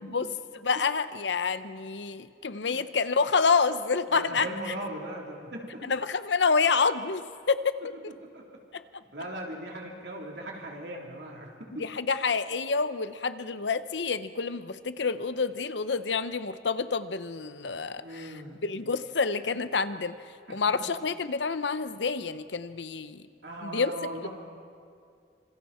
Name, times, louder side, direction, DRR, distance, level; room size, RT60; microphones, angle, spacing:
voice 1, 0.5-4.7 5.8-7.8 8.0-8.1 8.7-8.8 11.8-18.3 18.6-20.2 20.5-23.3 23.6-23.9, left 5 dB, 85° left, 12 dB, 0.8 m, -28 dB
voice 2, 4.1-5.9 8.1-8.6 9.1-11.8 17.9-18.6 20.7-20.8 23.4-24.3, right 1 dB, 75° right, -1 dB, 3.7 m, -39 dB
27.0 x 26.5 x 4.4 m, 2.3 s
head